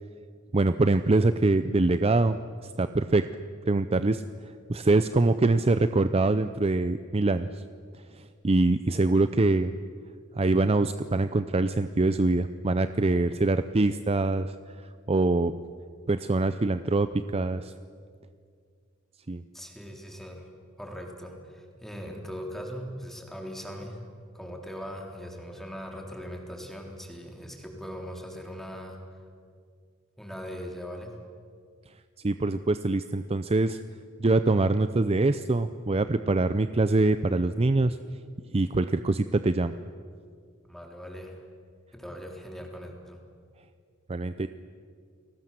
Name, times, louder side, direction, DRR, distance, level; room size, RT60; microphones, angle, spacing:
voice 1, 0.5-2.4 2.8-3.3 3.7-4.2 4.7-7.6 8.4-9.7 10.4-14.5 15.1-15.5 16.1-17.7 19.3-19.4 32.2-33.8 34.2-38.0 38.5-39.7 44.1-44.5, right 2 dB, 30° right, 11 dB, 0.6 m, -24 dB
voice 2, 19.5-20.5 20.8-24.0 24.3-29.0 30.2-31.1 40.6-41.4 41.9-43.2, equal, ahead, 1 dB, 3.8 m, -40 dB
29.5 x 20.0 x 7.6 m, 2.2 s
head